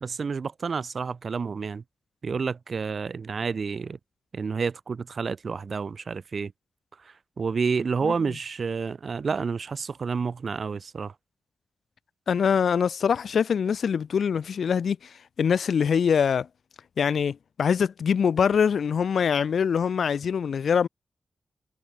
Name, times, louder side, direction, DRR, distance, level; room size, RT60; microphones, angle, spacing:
voice 1, 0.0-1.8 2.2-4.0 4.3-6.5 7.0-11.1, right 5 dB, 50° right, 0.6 m, -29 dB
voice 2, 12.3-16.5 17.0-20.9, left 7 dB, 75° left, 0.5 m, -24 dB
wide cardioid pair, 165°, 0 cm